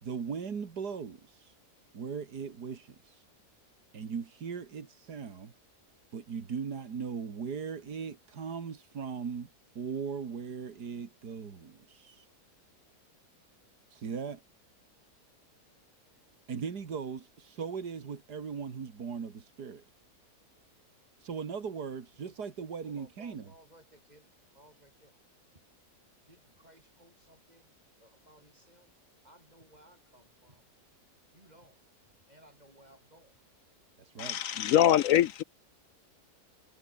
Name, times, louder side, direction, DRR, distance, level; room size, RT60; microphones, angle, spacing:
voice 1, 0.0-1.5 1.9-3.2 3.9-5.5 6.1-9.5 9.8-12.3 13.9-14.4 16.5-19.8 21.2-23.5 34.0-34.4, right 6 dB, 85° right, 2.6 m, -38 dB
voice 2, 22.8-25.2 26.3-28.9 29.2-30.7 31.3-31.8 32.3-33.4, right 1 dB, 25° right, 6.1 m, -60 dB
voice 3, 34.2-35.4, left 11 dB, 65° left, 0.9 m, -24 dB
omnidirectional pair, 1.7 m